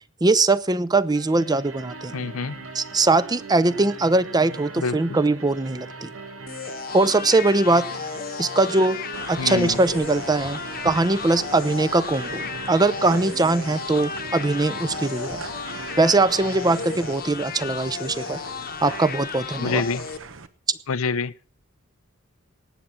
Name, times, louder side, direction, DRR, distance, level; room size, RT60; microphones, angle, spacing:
voice 1, 0.2-2.1 2.7-6.1 6.9-7.9 8.4-9.0 9.3-15.5 16.0-18.4 18.8-19.8, right 2 dB, 20° right, 0.6 m, -21 dB
sound 1, 1.1-17.1, right 3 dB, 80° right, 1.8 m, -40 dB
voice 2, 2.1-2.6 4.8-5.0 9.4-9.8 19.6-20.0 20.9-21.3, left 4 dB, 85° left, 0.6 m, -26 dB
sound 2, 6.5-20.2, left 6 dB, 45° left, 1.0 m, -34 dB
sound 3, 9.1-20.5, right 4 dB, 65° right, 1.0 m, -40 dB
18.5 x 7.5 x 5.7 m
head